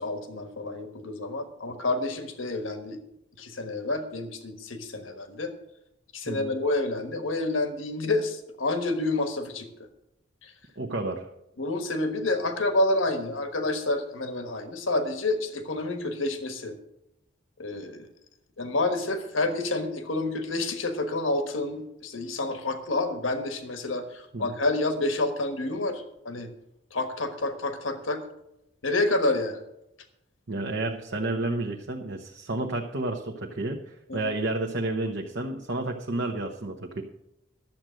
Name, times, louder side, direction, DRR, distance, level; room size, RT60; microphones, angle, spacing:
voice 1, 0.0-3.0 3.4-5.5 6.1-9.7 10.4-10.5 11.6-16.8 17.6-18.1 18.6-26.5 26.9-28.2 28.8-29.6 34.1-34.2, left 2 dB, 85° left, 7 dB, 1.4 m, -29 dB
voice 2, 10.8-11.2 24.3-24.5 30.5-37.0, right 2 dB, 65° right, 1 dB, 0.9 m, -31 dB
12.0 x 7.7 x 6.4 m, 0.85 s
head